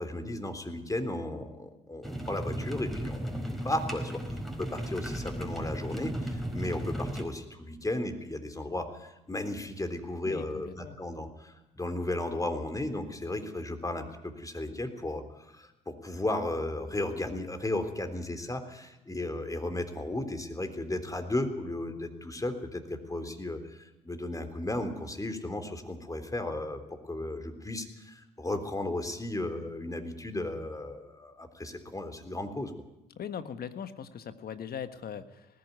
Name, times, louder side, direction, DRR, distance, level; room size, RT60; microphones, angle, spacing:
voice 1, 0.0-3.4 3.6-32.7, left 1 dB, 20° left, 7 dB, 3.6 m, -35 dB
sound 1, 2.0-7.2, equal, ahead, 4.6 m, -35 dB
voice 2, 10.2-11.0 33.2-35.5, left 8 dB, 65° left, 11 dB, 1.5 m, -40 dB
19.5 x 15.0 x 9.5 m, 0.94 s
supercardioid pair, 50°, 17 cm